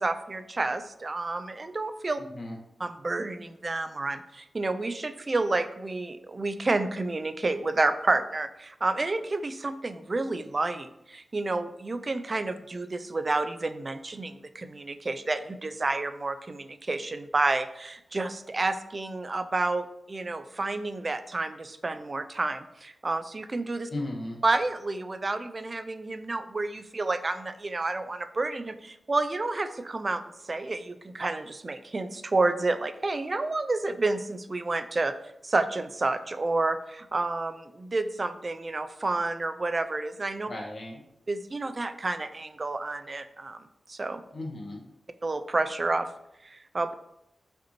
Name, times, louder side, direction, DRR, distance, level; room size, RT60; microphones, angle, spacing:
voice 1, 0.0-2.2 2.8-23.9 24.4-30.2 30.5-35.1 35.4-40.5 41.3-43.6 43.9-44.2 45.2-46.1 46.4-46.9, right 2 dB, 40° right, 10 dB, 0.3 m, -30 dB
voice 2, 2.2-2.6 23.9-24.4 40.5-41.0 44.3-44.8, left 1 dB, 55° left, -1 dB, 1.1 m, -36 dB
5.1 x 2.7 x 2.9 m, 0.81 s
cardioid pair, 60°, 0 cm